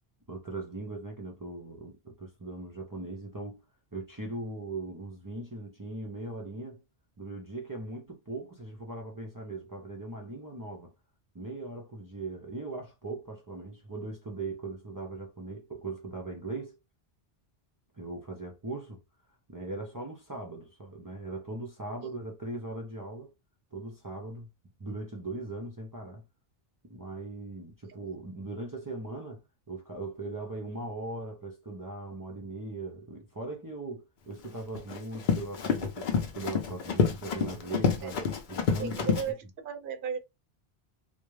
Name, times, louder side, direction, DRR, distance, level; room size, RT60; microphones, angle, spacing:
voice 1, 0.3-3.6 3.9-6.8 7.2-10.9 11.3-16.8 17.9-19.0 19.5-23.3 23.7-24.5 24.8-26.2 26.8-38.2 38.5-39.1, right 2 dB, 35° right, 0.3 m, -39 dB
Run, 34.4-39.3, left 6 dB, 55° left, 0.6 m, -28 dB
voice 2, 38.8-39.4 39.6-40.2, right 7 dB, 60° right, 0.7 m, -35 dB
2.4 x 2.1 x 3.0 m
omnidirectional pair, 1.1 m